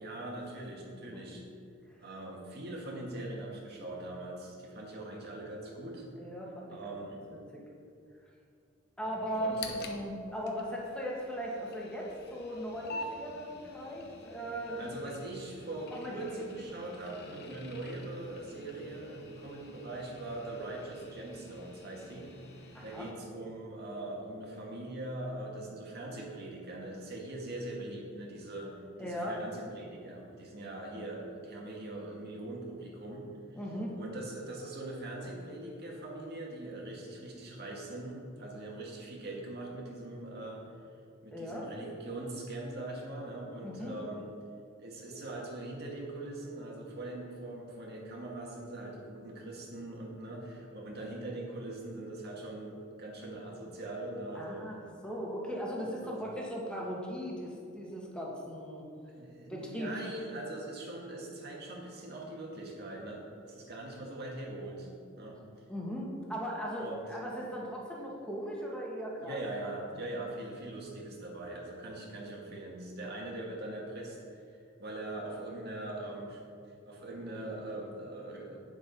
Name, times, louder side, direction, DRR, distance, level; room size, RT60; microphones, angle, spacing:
voice 1, 0.0-1.4 2.0-6.0 6.7-7.2 9.0-9.9 14.8-22.3 22.8-28.7 29.0-33.6 33.9-40.6 41.2-44.3 44.8-54.8 56.0-56.4 59.0-64.9 65.2-65.4 66.8-67.0 69.2-76.4 76.9-78.6, right 2 dB, 55° right, -2 dB, 2.1 m, -42 dB
voice 2, 6.2-6.9 7.5-7.6 9.0-14.9 15.9-16.4 22.7-23.1 29.0-29.4 33.5-34.0 41.3-41.7 43.6-43.9 54.3-54.8 55.0-58.8 59.5-59.9 65.7-69.4, equal, 5° left, -3 dB, 1.9 m, -38 dB
sound 1, 9.3-23.1, left 2 dB, 55° left, 1.1 m, -49 dB
9.3 x 7.2 x 5.5 m, 2.4 s
head